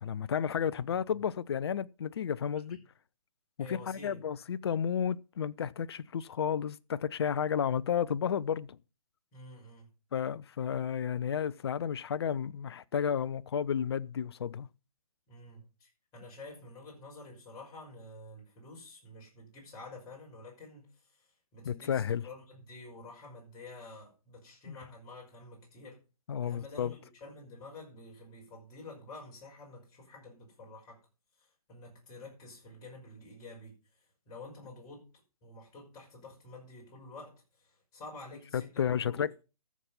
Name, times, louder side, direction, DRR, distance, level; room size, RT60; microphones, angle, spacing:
voice 1, 0.0-2.8 3.6-8.8 10.1-14.7 21.6-22.2 24.7-24.8 26.3-26.9 38.5-39.3, left 8 dB, 45° left, 0.6 m, -32 dB
voice 2, 0.7-1.2 2.7-2.8 3.6-4.2 9.3-9.9 15.3-26.0 26.4-31.0 31.4-33.8 34.3-35.1 35.4-39.3, left 2 dB, 20° left, 5.6 m, -49 dB
14.0 x 7.4 x 5.6 m
figure-of-eight pair, 140°, 19 cm